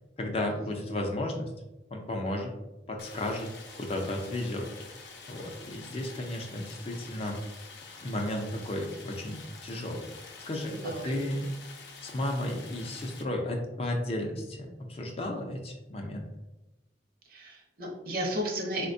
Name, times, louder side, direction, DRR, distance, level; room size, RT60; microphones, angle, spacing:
voice 1, 0.2-1.5 1.9-2.5 2.9-3.5 3.7-4.7 5.3-7.4 8.0-11.5 12.0-16.3, left 1 dB, 35° left, 2 dB, 0.4 m, -33 dB
Stream, 3.0-13.2, left 4 dB, 80° left, 0.5 m, -48 dB
voice 2, 10.6-11.4 17.2-18.9, right 1 dB, 55° right, 0 dB, 0.7 m, -34 dB
4.2 x 2.2 x 2.5 m, 1.0 s
head